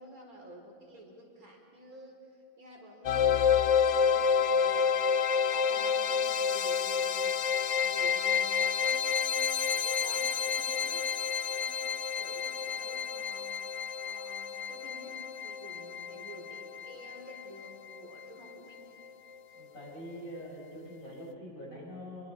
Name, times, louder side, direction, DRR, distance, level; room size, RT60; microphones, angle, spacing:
voice 1, 0.0-4.9 5.3-7.3 7.8-9.5 9.8-11.1 11.5-13.5 14.0-15.1 15.4-18.8, right 1 dB, 45° right, 0 dB, 4.9 m, -50 dB
sound 1, 3.0-18.0, left 7 dB, 90° left, 0.6 m, -29 dB
voice 2, 19.5-22.3, equal, 40° left, -3 dB, 8.1 m, -44 dB
29.0 x 23.0 x 5.4 m, 2.5 s
omnidirectional pair, 2.1 m